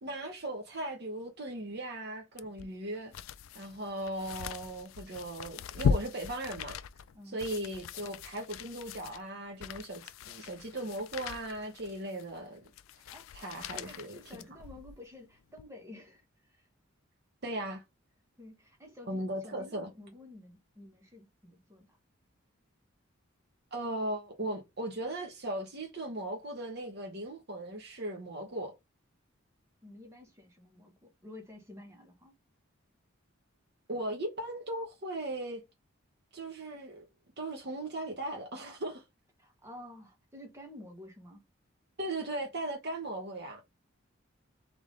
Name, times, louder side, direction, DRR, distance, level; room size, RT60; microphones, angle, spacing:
voice 1, 0.0-3.1 3.5-6.8 7.3-12.6 13.3-14.4 17.4-17.8 19.1-19.9 23.7-28.8 33.9-35.6 36.3-37.0 37.4-39.0 42.0-43.6, right 1 dB, 50° right, 1.0 m, -38 dB
sound 1, 2.4-15.0 15.5-15.6, left 6 dB, 80° left, 0.3 m, -38 dB
voice 2, 7.1-7.5 13.1-13.3 13.7-16.6 18.4-22.0 29.8-32.4 39.4-41.4, left 1 dB, 15° right, 1.2 m, -51 dB
3.5 x 3.5 x 3.7 m
head